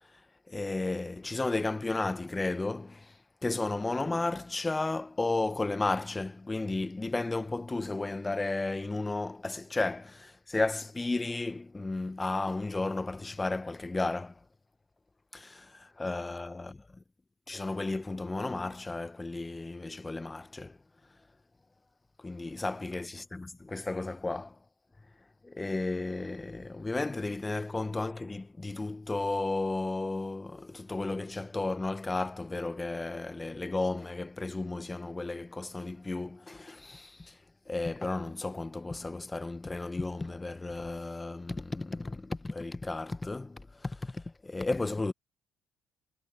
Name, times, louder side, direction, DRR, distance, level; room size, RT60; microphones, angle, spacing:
voice 1, 0.5-3.1 3.4-14.3 15.3-16.8 17.5-20.8 22.2-24.5 25.4-37.3 37.7-45.1, left 2 dB, 20° left, 1.5 m, -33 dB
hypercardioid pair, 55°, 0 cm